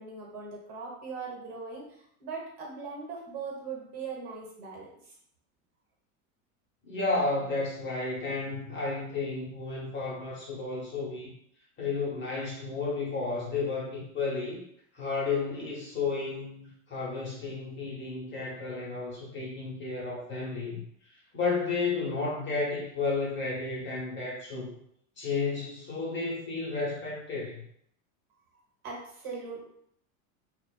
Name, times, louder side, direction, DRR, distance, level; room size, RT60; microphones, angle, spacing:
voice 1, 0.0-5.1 28.8-29.7, right 4 dB, 50° right, -2 dB, 1.1 m, -40 dB
voice 2, 6.9-11.3 11.8-14.6 14.9-20.8 21.3-24.7 25.2-27.6, left 3 dB, 25° left, -5 dB, 0.9 m, -32 dB
2.4 x 2.2 x 2.3 m, 0.68 s
supercardioid pair, 105°, 42 cm